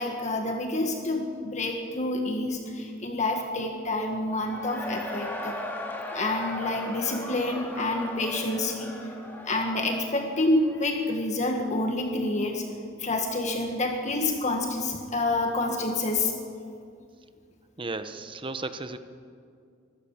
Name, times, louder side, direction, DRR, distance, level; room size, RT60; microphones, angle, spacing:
voice 1, 0.0-5.6 6.1-9.0 9.4-12.6 13.0-16.3, left 2 dB, 40° left, 3 dB, 1.8 m, -28 dB
Cheering / Crowd, 4.3-11.0, left 1 dB, 10° left, 2.8 m, -38 dB
voice 2, 17.8-19.0, right 3 dB, 25° right, 10 dB, 1.0 m, -34 dB
24.5 x 15.5 x 7.3 m, 2.3 s
head